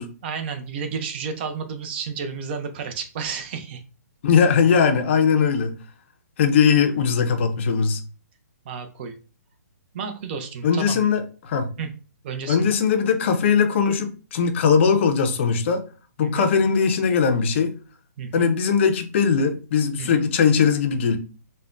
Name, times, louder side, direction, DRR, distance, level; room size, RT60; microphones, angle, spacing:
voice 1, 0.2-3.8 8.7-9.2 9.9-11.0 11.8-11.9 12.2-12.8 16.2-16.5 18.2-18.5 20.0-20.3, right 6 dB, 35° right, 0.5 m, -31 dB
voice 2, 4.2-5.7 6.4-8.0 10.6-11.7 12.5-15.8 16.2-17.7 18.3-21.2, left 6 dB, 40° left, 0.5 m, -20 dB
3.4 x 2.2 x 2.4 m
hypercardioid pair, 150°, 9 cm